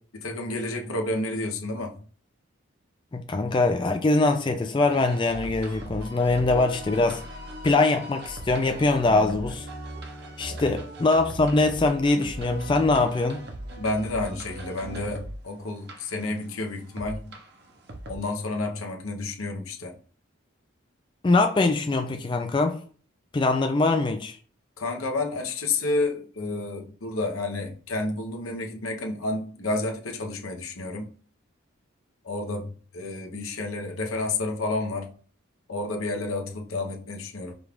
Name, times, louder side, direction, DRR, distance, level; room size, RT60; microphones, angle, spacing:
voice 1, 0.1-2.0 10.5-10.7 13.8-17.4 18.1-19.9 24.8-31.1 32.2-35.1 35.7-37.5, left 2 dB, 90° left, 0.8 m, -30 dB
voice 2, 3.1-7.2 7.6-9.7 10.4-13.4 21.2-22.8 23.3-24.3, left 3 dB, 25° left, 0.3 m, -23 dB
sound 1, 4.8-18.2, right 1 dB, 50° right, 0.7 m, -39 dB
5.1 x 2.4 x 3.5 m
head